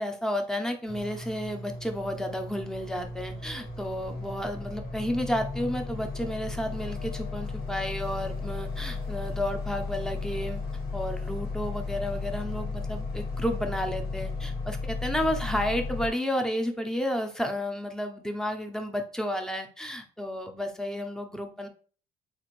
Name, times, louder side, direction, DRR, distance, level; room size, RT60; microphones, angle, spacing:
voice 1, 0.0-10.6 10.9-21.7, equal, 5° left, 5 dB, 0.6 m, -32 dB
sound 1, 0.9-16.1, left 3 dB, 80° left, 1.6 m, -35 dB
3.7 x 2.5 x 3.0 m, 0.40 s
cardioid pair, 110°, 17 cm